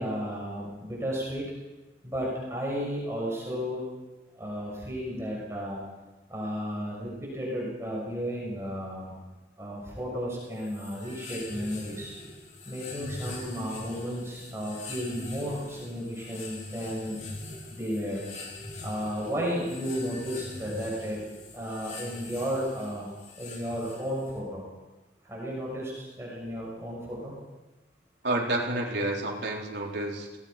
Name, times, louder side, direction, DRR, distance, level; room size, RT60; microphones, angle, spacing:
voice 1, 0.0-1.4 2.0-3.8 4.3-5.8 6.3-9.2 9.6-12.1 12.7-17.2 17.7-18.2 18.8-21.2 21.5-23.1 23.4-24.6 25.2-27.3, equal, 15° right, -4 dB, 6.3 m, -33 dB
sound 1, 10.5-24.4, left 2 dB, 45° left, 4.2 m, -43 dB
voice 2, 28.2-30.5, right 1 dB, 70° right, -2 dB, 4.2 m, -30 dB
26.5 x 19.0 x 5.2 m, 1.1 s
head